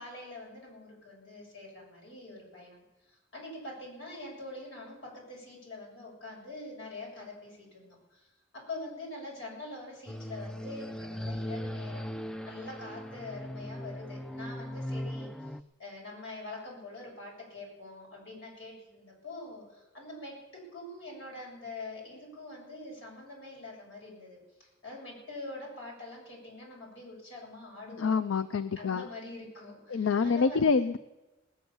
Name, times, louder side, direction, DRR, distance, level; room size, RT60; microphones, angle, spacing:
voice 1, 0.0-2.8 3.1-8.3 8.5-12.1 12.4-15.3 15.8-28.2 28.8-30.9, left 2 dB, 70° left, -2 dB, 7.4 m, -44 dB
sound 1, 10.1-15.6, equal, 5° left, 0.4 m, -38 dB
voice 2, 28.0-29.1 29.9-31.0, left 5 dB, 85° left, 13 dB, 0.5 m, -26 dB
19.0 x 9.5 x 7.1 m, 1.1 s
head